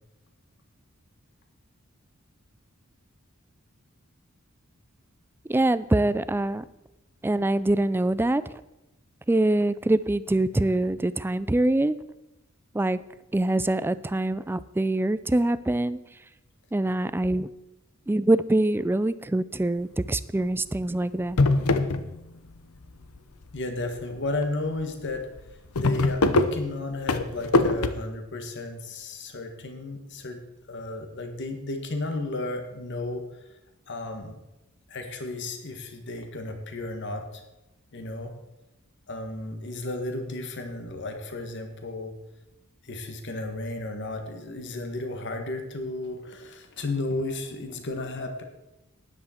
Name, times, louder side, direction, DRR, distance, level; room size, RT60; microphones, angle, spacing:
voice 1, 5.5-6.6 7.2-8.4 9.3-12.0 12.7-13.0 13.3-16.0 16.7-17.5 18.1-21.4, right 1 dB, 10° right, 15 dB, 0.3 m, -24 dB
sound 1, 20.0-20.3 20.8-20.9 21.2-22.5 22.8-23.4 24.0-24.1 24.4-24.5 24.8-24.9 25.2-27.9, left 2 dB, 85° left, 0.8 m, -23 dB
voice 2, 23.5-25.3 25.8-30.4 30.7-33.5 33.9-34.3 34.9-37.4 37.9-38.3 39.1-42.1 42.8-48.4, left 2 dB, 55° left, 5 dB, 1.5 m, -33 dB
13.0 x 10.0 x 4.4 m, 0.95 s
head